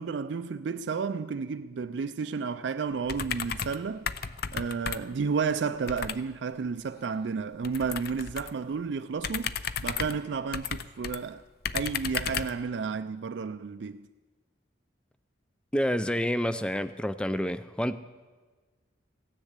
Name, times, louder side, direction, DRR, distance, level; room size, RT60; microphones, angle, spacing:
voice 1, 0.0-4.1 4.5-9.5 9.8-11.4 11.7-14.1, right 5 dB, 65° right, 0.4 m, -32 dB
sound 1, 3.1-3.8 4.1-5.2 5.9-6.2 7.6-8.6 9.2-11.2 11.6-12.6, left 7 dB, 50° left, 0.5 m, -34 dB
voice 2, 15.7-18.0, equal, 5° left, 0.4 m, -28 dB
16.0 x 10.5 x 8.1 m
head